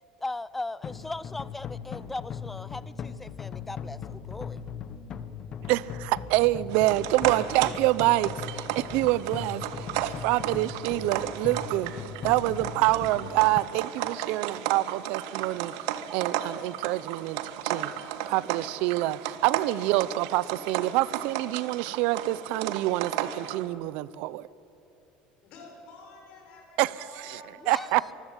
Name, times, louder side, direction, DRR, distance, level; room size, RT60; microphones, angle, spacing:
voice 1, 0.2-4.6 27.6-28.1, left 2 dB, 5° left, 19 dB, 0.4 m, -38 dB
sound 1, 0.8-13.6, left 7 dB, 30° left, 0.9 m, -39 dB
voice 2, 5.7-9.6 10.0-11.9 12.2-15.7 16.1-17.4 17.6-17.9 18.3-24.5 26.8-26.9 27.2-27.4 27.7-28.1, right 17 dB, 55° right, 20 dB, 0.6 m, -26 dB
sound 2, 6.7-23.7, right 11 dB, 75° right, 1.4 m, -34 dB
voice 3, 25.4-28.1, left 3 dB, 45° left, 0 dB, 6.7 m, -49 dB
24.0 x 15.5 x 8.9 m, 3.0 s
cardioid pair, 175°, 3 cm